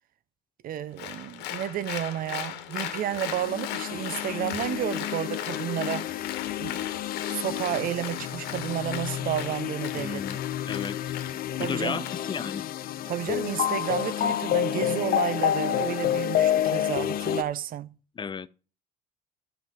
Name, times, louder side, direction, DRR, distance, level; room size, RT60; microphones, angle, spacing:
voice 1, 0.6-6.1 6.6-6.9 7.3-10.2 11.6-12.1 13.1-17.9, right 11 dB, 55° right, 0.7 m, -31 dB
Applause, 1.0-12.6, left 11 dB, 90° left, 1.3 m, -38 dB
sound 1, 3.1-17.4, left 11 dB, 60° left, 0.7 m, -29 dB
voice 2, 9.9-10.4 10.7-11.1 11.6-12.6 18.2-18.5, left 6 dB, 30° left, 0.5 m, -34 dB
12.0 x 5.3 x 6.0 m
cardioid pair, 110°, 17 cm